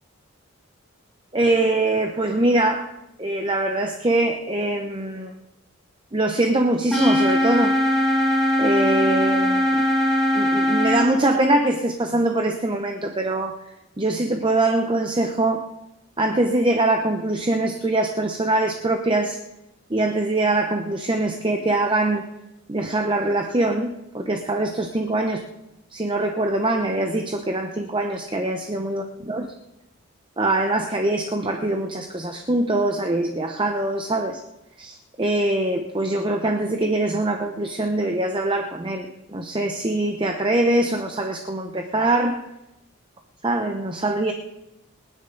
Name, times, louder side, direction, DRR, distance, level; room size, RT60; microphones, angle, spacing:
voice 1, 1.3-2.9 3.2-5.3 6.1-7.7 8.6-9.8 10.3-13.6 14.0-15.7 16.2-19.4 19.9-22.2 22.7-25.4 25.9-29.5 30.4-34.4 34.8-42.4 43.4-44.3, right 2 dB, 20° right, 4 dB, 0.8 m, -23 dB
sound 1, 6.9-11.0, left 1 dB, ahead, 4.2 m, -20 dB
28.5 x 10.0 x 3.9 m, 0.93 s
head